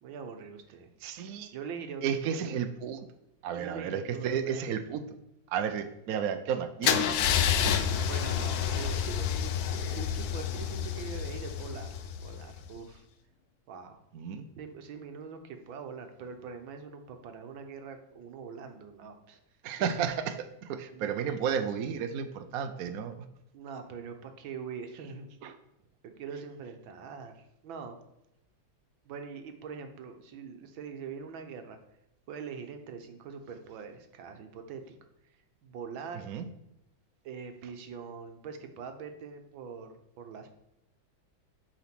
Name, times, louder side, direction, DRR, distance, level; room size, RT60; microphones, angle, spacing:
voice 1, 0.0-0.9 1.5-2.5 3.5-4.7 7.5-11.9 12.2-13.1 13.7-14.0 14.6-19.4 19.8-19.9 20.9-21.3 23.5-25.3 26.0-28.0 29.1-31.8 32.3-34.8 35.6-36.3 37.3-40.5, right 6 dB, 80° right, 6 dB, 1.7 m, -43 dB
voice 2, 1.0-1.5 2.0-3.1 3.4-5.0 5.5-7.2 14.1-14.5 19.6-23.3 25.4-25.6 36.3-36.5, right 7 dB, 65° right, 8 dB, 0.9 m, -32 dB
Car / Engine starting / Idling, 6.8-12.7, left 8 dB, 70° left, 0.9 m, -29 dB
8.7 x 4.1 x 6.0 m, 0.85 s
omnidirectional pair, 2.1 m